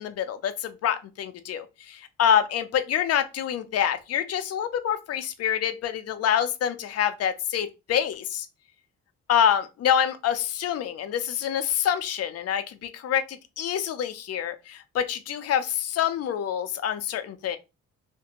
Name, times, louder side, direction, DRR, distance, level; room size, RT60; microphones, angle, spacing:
voice 1, 0.0-8.5 9.3-17.6, left 9 dB, 55° left, 0.5 m, -26 dB
2.5 x 2.2 x 2.8 m
cardioid pair, 90°, 30 cm